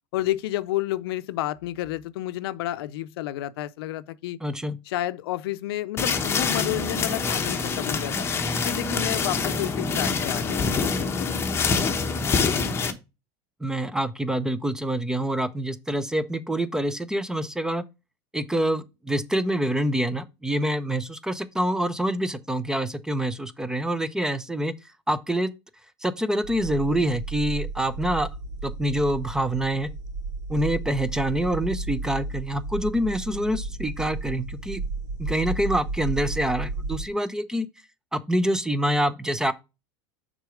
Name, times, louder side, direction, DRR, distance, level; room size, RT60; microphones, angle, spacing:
voice 1, 0.1-4.4 4.9-8.3 8.6-11.5, left 15 dB, 90° left, 0.5 m, -30 dB
voice 2, 4.4-4.8 13.6-17.8 18.3-24.7 25.1-25.5 26.0-28.3 28.6-29.9 30.5-34.8 35.2-37.7 38.1-39.5, right 1 dB, 5° right, 0.5 m, -26 dB
sound 1, 6.0-12.9, left 4 dB, 20° left, 0.9 m, -25 dB
sound 2, 26.4-37.1, right 3 dB, 60° right, 2.8 m, -33 dB
6.4 x 3.9 x 4.9 m
supercardioid pair, 140°, 12 cm